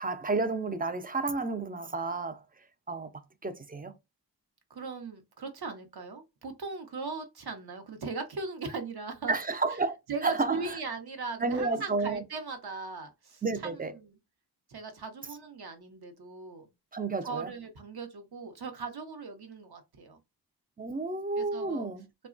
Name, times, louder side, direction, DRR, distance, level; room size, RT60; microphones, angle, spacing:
voice 1, 0.0-2.4 2.9-3.1 3.4-3.9 9.3-10.0 10.2-10.8 11.4-12.2 13.4-13.9 16.9-17.5 20.8-22.1, right 3 dB, 25° right, 0.4 m, -31 dB
voice 2, 4.7-9.3 9.7-9.8 10.1-14.2 14.7-16.7 17.2-20.2 21.4-21.9, right 4 dB, 65° right, 0.8 m, -39 dB
2.9 x 2.2 x 2.4 m
wide cardioid pair, 60°, 40 cm